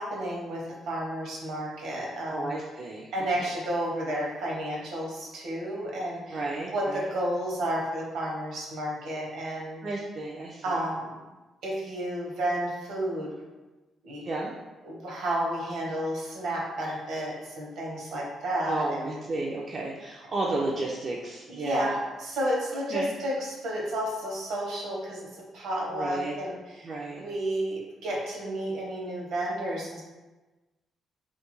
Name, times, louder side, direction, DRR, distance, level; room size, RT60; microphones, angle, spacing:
voice 1, 0.0-2.5 3.1-10.0 10.6-11.2 11.6-13.3 14.0-14.2 14.8-19.2 21.5-25.3 25.5-26.9 27.2-30.0, right 1 dB, 75° right, -3 dB, 0.7 m, -31 dB
voice 2, 2.3-3.5 6.3-7.1 9.8-10.8 14.2-14.5 18.6-21.9 22.9-23.1 25.9-26.4 26.8-27.2, right 2 dB, 50° right, -3 dB, 0.3 m, -33 dB
2.3 x 2.2 x 3.0 m, 1.2 s
supercardioid pair, 55°, 0 cm